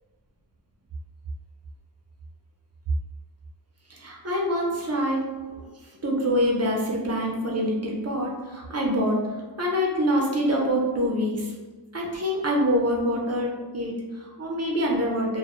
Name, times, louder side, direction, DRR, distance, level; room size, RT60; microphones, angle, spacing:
voice 1, 3.9-5.6 6.0-9.2 9.6-11.5 11.9-15.4, equal, 35° right, -2 dB, 0.5 m, -25 dB
2.2 x 2.0 x 2.9 m, 1.3 s
wide cardioid pair, 85°, 44 cm